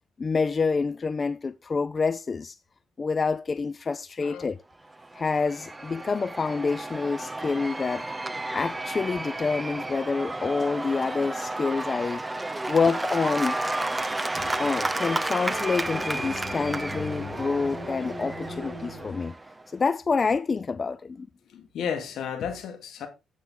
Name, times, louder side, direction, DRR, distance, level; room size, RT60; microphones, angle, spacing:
voice 1, 0.2-2.6 3.0-4.6 5.1-8.1 8.5-12.2 12.7-13.6 14.6-19.4 19.7-21.3, left 4 dB, 35° left, 0.4 m, -27 dB
Cheering / Applause / Crowd, 4.9-19.6, right 2 dB, 15° right, 0.7 m, -32 dB
sound 1, 14.3-19.1, left 2 dB, 5° left, 6.1 m, -39 dB
voice 2, 21.5-23.1, left 7 dB, 70° left, 2.4 m, -33 dB
9.3 x 8.3 x 3.8 m
cardioid pair, 90°, 0 cm